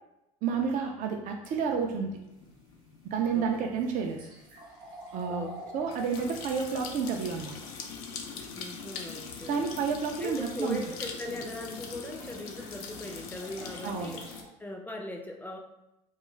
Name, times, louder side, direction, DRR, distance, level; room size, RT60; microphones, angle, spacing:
voice 1, 0.4-2.1 3.1-4.2 5.1-5.5 5.7-7.6 9.5-10.8 13.8-14.1, right 6 dB, 50° right, 2 dB, 0.4 m, -30 dB
sound 1, 1.4-14.4, left 5 dB, 85° left, 0.5 m, -43 dB
sound 2, 2.3-7.9 11.0-11.1 12.2-14.5, right 1 dB, 75° right, 0.8 m, -49 dB
voice 2, 3.3-3.7 4.8-4.9 5.3-5.5 5.8-5.9 8.5-9.7 10.2-14.3 14.6-15.6, left 1 dB, 10° left, 1 dB, 0.5 m, -39 dB
2.3 x 2.3 x 3.0 m, 0.90 s
supercardioid pair, 90°, 18 cm